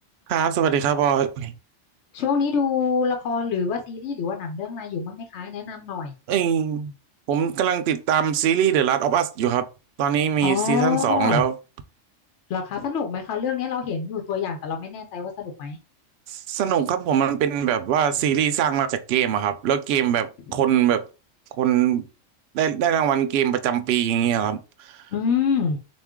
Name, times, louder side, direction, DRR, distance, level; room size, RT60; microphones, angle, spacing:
voice 1, 0.3-1.5 6.3-6.9 7.3-9.7 10.0-11.5 16.3-21.0 21.6-22.0 22.5-24.6, right 9 dB, 65° right, 0.7 m, -22 dB
voice 2, 2.1-6.1 10.4-11.4 12.5-15.8 20.5-20.6 25.1-25.8, left 6 dB, 70° left, 1.0 m, -26 dB
3.8 x 2.5 x 3.5 m
omnidirectional pair, 1.3 m